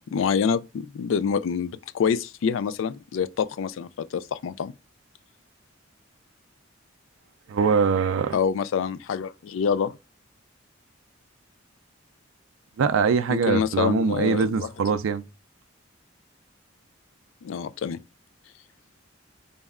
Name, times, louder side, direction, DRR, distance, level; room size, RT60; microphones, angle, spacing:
voice 1, 0.1-4.7 8.3-10.0 13.3-14.7 17.4-18.0, left 6 dB, 70° left, 0.3 m, -26 dB
voice 2, 7.5-8.4 12.8-15.2, right 6 dB, 80° right, 0.4 m, -23 dB
4.1 x 2.1 x 3.5 m
head